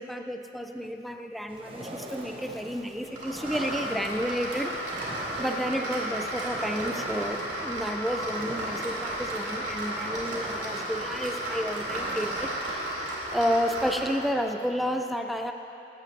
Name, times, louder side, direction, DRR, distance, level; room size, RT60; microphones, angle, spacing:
voice 1, 0.0-4.7 5.4-12.8 13.3-15.5, equal, ahead, 4 dB, 0.3 m, -31 dB
sound 1, 1.5-12.8, right 1 dB, 30° right, 0.7 m, -42 dB
sound 2, 3.2-14.3, right 1 dB, 85° right, 2.3 m, -34 dB
12.5 x 8.2 x 3.2 m, 2.9 s
head